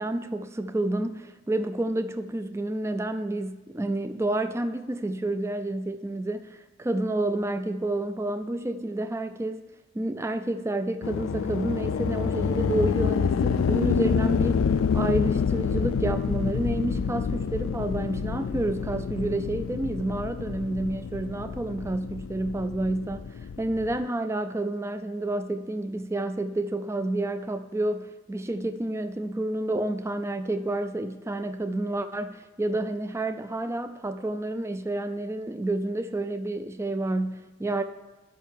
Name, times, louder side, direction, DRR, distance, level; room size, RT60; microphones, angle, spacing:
voice 1, 0.0-9.6 9.9-23.2 23.6-37.8, right 1 dB, 15° right, 10 dB, 0.3 m, -29 dB
sound 1, 11.0-24.0, left 6 dB, 80° left, 0.4 m, -27 dB
11.0 x 5.5 x 7.2 m, 1.1 s
head